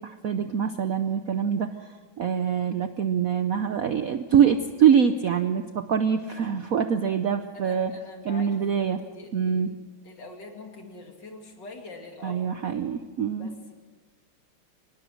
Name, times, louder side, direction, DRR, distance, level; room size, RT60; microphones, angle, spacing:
voice 1, 0.0-1.7 2.2-7.9 8.3-9.0 9.3-9.7 12.2-13.5, right 8 dB, 60° right, 9 dB, 0.9 m, -24 dB
voice 2, 7.5-9.7 10.0-12.4 13.4-13.7, left 2 dB, 55° left, 3 dB, 3.2 m, -44 dB
24.5 x 19.5 x 6.5 m, 1.4 s
omnidirectional pair, 2.3 m